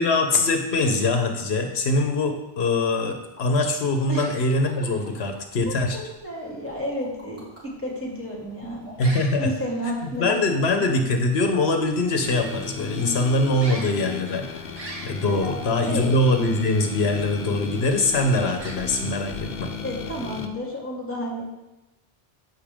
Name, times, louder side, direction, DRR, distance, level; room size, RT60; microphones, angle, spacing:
voice 1, 0.0-6.0 9.0-9.5 10.2-14.5 15.0-19.7, left 2 dB, 85° left, 5 dB, 1.2 m, -23 dB
sound 1, 2.8-2.9 3.4-3.5 4.3-5.4 6.6-7.7 8.8-9.2 9.6-9.9 10.1-10.5 10.7-10.8, left 1 dB, 15° right, 3.7 m, -47 dB
sound 2, 4.0-20.7, right 1 dB, 35° right, 1.2 m, -46 dB
voice 2, 5.7-8.9 9.4-10.7 15.3-15.5 15.8-16.1 19.8-21.4, equal, 10° left, -2 dB, 2.4 m, -31 dB
sound 3, 12.2-20.5, left 4 dB, 65° left, 1.0 m, -35 dB
10.0 x 8.2 x 3.6 m, 1.0 s
omnidirectional pair, 1.1 m